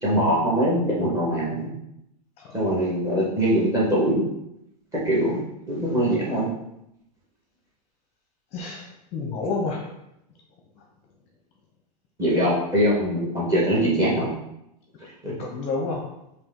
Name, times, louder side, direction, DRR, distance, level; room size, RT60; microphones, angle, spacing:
voice 1, 0.0-1.7 2.5-4.2 5.0-6.5 12.2-14.3 15.2-15.3, equal, 15° right, -5 dB, 1.4 m, -22 dB
voice 2, 8.5-9.9 15.4-16.0, left 3 dB, 30° left, 0 dB, 0.7 m, -29 dB
4.7 x 2.8 x 3.7 m, 0.82 s
supercardioid pair, 150°, 21 cm